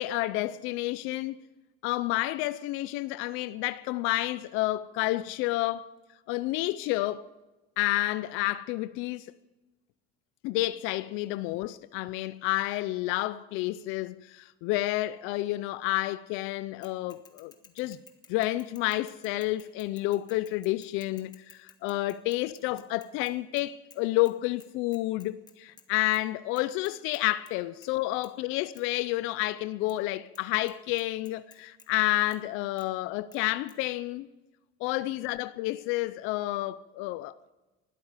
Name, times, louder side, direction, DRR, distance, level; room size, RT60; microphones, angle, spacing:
voice 1, 0.0-1.4 1.8-5.9 6.3-7.3 7.8-9.3 10.4-18.0 18.3-34.3 34.8-37.4, left 17 dB, 75° left, 0.5 m, -30 dB
Bicycle / Mechanisms, 16.8-24.0 24.3-24.4 24.6-25.9 26.1-26.2 26.6-27.5 27.8-28.0 28.2-28.3 28.7-28.8 29.9-30.0 30.3-30.4 30.7-31.9 32.3-32.4 32.8-32.9 33.3-33.4 33.7-33.8, left 5 dB, 20° left, 1.3 m, -55 dB
20.0 x 12.5 x 5.0 m
cardioid pair, 160°, 21 cm